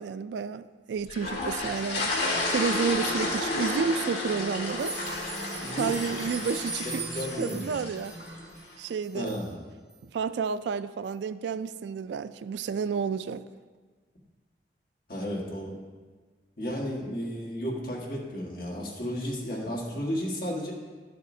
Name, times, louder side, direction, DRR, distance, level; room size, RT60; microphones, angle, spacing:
voice 1, 0.0-2.1 2.5-5.0 5.7-7.1 7.4-8.2 8.8-9.4 10.0-13.4, right 6 dB, 80° right, 14 dB, 0.3 m, -31 dB
sound 1, 1.1-8.4, left 2 dB, 80° left, 1.8 m, -32 dB
sound 2, 2.2-8.6, equal, 5° left, 2.8 m, -41 dB
sound 3, 4.7-9.4 9.9-10.0 10.4-10.5 11.0-11.1, right 3 dB, 15° right, 1.3 m, -41 dB
voice 2, 5.6-5.9 7.1-7.6 9.1-9.5 15.1-15.8 16.6-20.7, equal, 50° left, -3 dB, 1.6 m, -33 dB
12.0 x 6.7 x 2.7 m, 1.4 s
head